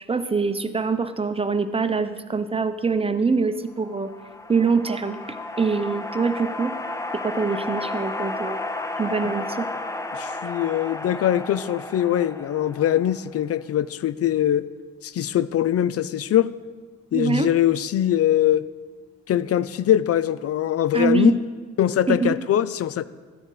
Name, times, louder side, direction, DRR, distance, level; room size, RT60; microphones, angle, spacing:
voice 1, 0.1-4.1 4.5-5.2 5.6-6.7 7.2-8.6 9.0-9.7 17.1-17.5 20.9-21.4 22.1-22.4, right 4 dB, 20° right, 10 dB, 0.8 m, -24 dB
sound 1, 3.8-13.4, left 2 dB, 10° left, 1.0 m, -33 dB
voice 2, 10.1-14.7 15.0-16.5 17.1-18.6 19.3-21.3 21.8-23.0, left 11 dB, 50° left, 17 dB, 0.6 m, -22 dB
14.0 x 9.8 x 4.9 m, 1.5 s
cardioid pair, 90°, 30 cm